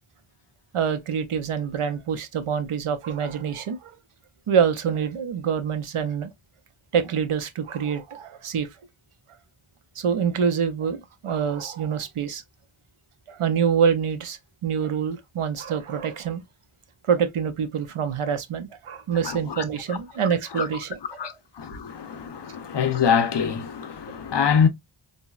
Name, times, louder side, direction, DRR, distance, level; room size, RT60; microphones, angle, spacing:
voice 1, 0.7-4.0 4.5-6.3 6.9-8.7 10.0-12.4 13.3-16.4 17.1-21.3, right 7 dB, 85° right, 0.6 m, -26 dB
voice 2, 19.2-19.6 20.5-20.7 21.2-24.7, left 7 dB, 55° left, 0.6 m, -24 dB
3.9 x 2.0 x 2.2 m
wide cardioid pair, 50°, 50 cm